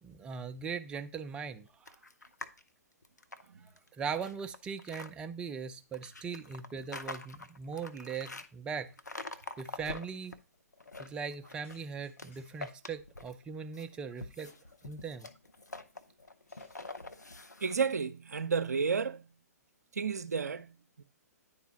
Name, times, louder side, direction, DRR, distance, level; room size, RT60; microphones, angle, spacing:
voice 1, 0.0-1.9 3.9-8.9 9.6-10.3 11.0-14.5 14.8-15.3, right 6 dB, 10° right, 0.3 m, -40 dB
sound 1, 1.9-2.6 3.0-5.1 5.9-8.5 9.0-10.4 10.7-11.8 12.2-13.4 13.7-17.8, left 2 dB, 80° left, 0.6 m, -45 dB
sound 2, 11.6-12.9 14.3-15.1 15.4-15.5 16.5-17.3, left 3 dB, 50° left, 4.0 m, -66 dB
voice 2, 17.6-19.3 19.9-21.0, right 5 dB, 65° right, 0.5 m, -32 dB
10.0 x 4.0 x 2.9 m
figure-of-eight pair, 120°, 9 cm